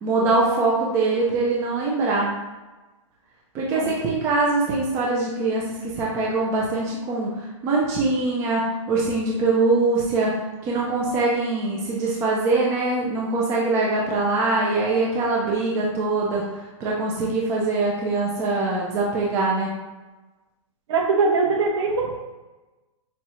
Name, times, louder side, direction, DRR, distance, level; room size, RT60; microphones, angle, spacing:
voice 1, 0.0-2.3 3.5-10.4 10.6-19.7, right 3 dB, 15° right, -3 dB, 0.5 m, -23 dB
voice 2, 20.9-22.1, right 4 dB, 55° right, 1 dB, 1.1 m, -21 dB
7.0 x 2.4 x 3.0 m, 1.2 s
hypercardioid pair, 165°, 17 cm